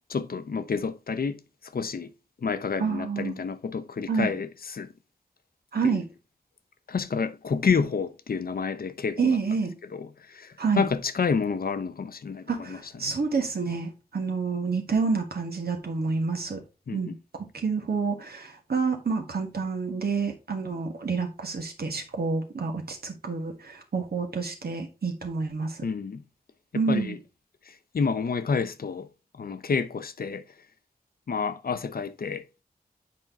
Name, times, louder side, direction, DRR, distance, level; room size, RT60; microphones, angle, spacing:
voice 1, 0.1-2.1 2.4-4.9 5.8-6.0 6.9-9.4 9.9-12.8 13.0-13.1 16.9-17.2 25.8-26.2 26.9-27.2 27.7-29.1 29.3-30.5 31.3-32.4, left 5 dB, 75° left, 0.6 m, -29 dB
voice 2, 2.8-3.4 4.1-4.3 5.7-6.0 9.2-9.7 10.6-10.9 12.5-16.6 16.9-25.8 26.7-27.2, right 4 dB, 90° right, 1.5 m, -28 dB
7.5 x 4.4 x 3.6 m
wide cardioid pair, 70°, 16 cm